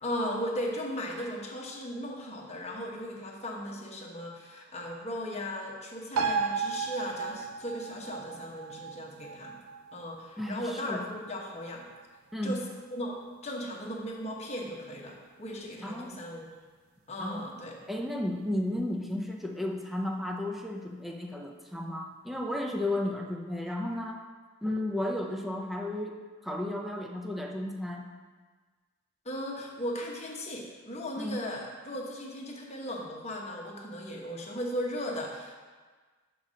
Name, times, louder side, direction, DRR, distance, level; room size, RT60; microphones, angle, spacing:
voice 1, 0.0-9.6 9.9-11.8 12.4-12.6 12.9-13.2 13.4-16.4 17.1-17.7 29.2-35.5, equal, 30° left, -1 dB, 1.0 m, -37 dB
sound 1, 6.2-13.1 13.5-13.6, right 5 dB, 75° right, 0.4 m, -36 dB
voice 2, 10.4-11.0 12.3-12.6 15.8-16.1 17.2-17.4 17.9-24.2 24.6-26.2 26.4-28.1 31.2-31.4, left 1 dB, ahead, 1 dB, 0.6 m, -33 dB
6.0 x 3.9 x 6.2 m, 1.4 s
head